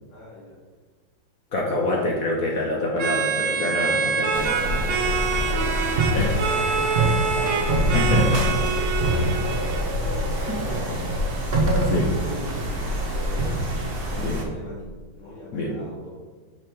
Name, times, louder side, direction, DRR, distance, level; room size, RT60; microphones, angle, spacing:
voice 1, 0.1-0.6 1.5-1.9 2.2-2.5 4.1-8.3 8.5-9.4 9.7-11.2 11.9-16.1, left 1 dB, 90° left, -9 dB, 3.1 m, -40 dB
voice 2, 1.5-4.8 6.1-6.4 7.9-8.5 10.5-10.6 11.8-12.1 14.2-14.4 15.5-15.8, left 2 dB, 60° left, -1 dB, 1.0 m, -26 dB
sound 1, 3.0-9.8, right 5 dB, 75° right, 1.5 m, -26 dB
sound 2, 4.3-14.4, right 1 dB, 40° right, 0.8 m, -25 dB
6.0 x 5.0 x 4.5 m, 1.4 s
omnidirectional pair, 2.2 m